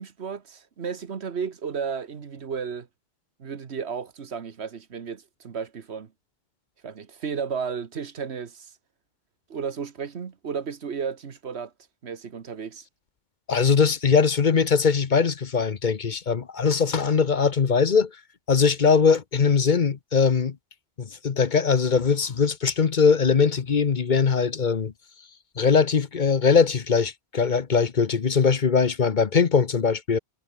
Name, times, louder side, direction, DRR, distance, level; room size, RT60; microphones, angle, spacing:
voice 1, 0.0-2.9 3.4-6.1 6.8-8.7 9.5-11.7 12.0-12.8, right 6 dB, 80° right, 1.6 m, -33 dB
voice 2, 13.5-18.1 18.5-20.6 21.0-24.9 25.6-30.2, left 5 dB, 50° left, 1.0 m, -21 dB
omnidirectional pair, 1.1 m